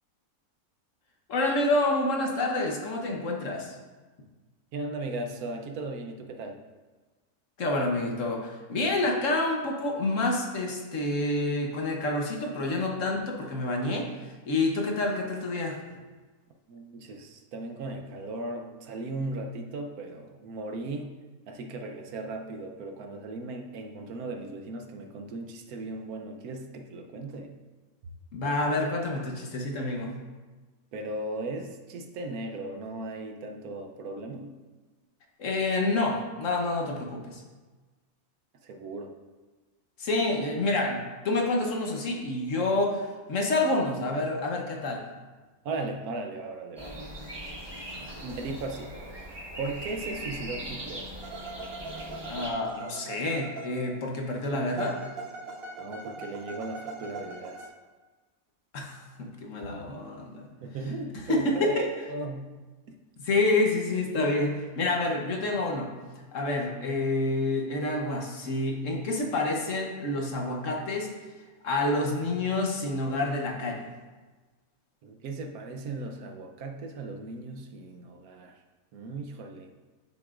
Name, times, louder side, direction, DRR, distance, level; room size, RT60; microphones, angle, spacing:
voice 1, 1.3-3.8 7.6-14.1 14.5-15.8 28.3-30.2 35.4-37.4 40.0-45.0 47.9-48.1 52.3-55.0 58.7-60.5 61.3-61.9 63.2-65.9 66.3-71.1 71.6-73.8, left 2 dB, 60° left, 1 dB, 1.2 m, -28 dB
voice 2, 4.7-6.6 16.7-21.1 21.5-27.6 30.9-34.5 38.6-39.1 45.6-47.1 48.2-48.9 49.6-51.1 55.8-57.7 60.6-62.5 62.9-63.0 75.0-78.6 78.9-79.7, right 2 dB, 75° right, 4 dB, 1.2 m, -37 dB
sound 1, 46.8-52.5, right 1 dB, 20° right, 1.0 m, -40 dB
sound 2, 51.2-54.2 54.8-57.7, right 3 dB, 50° right, 0.8 m, -41 dB
10.5 x 6.0 x 2.5 m, 1.3 s
omnidirectional pair, 1.6 m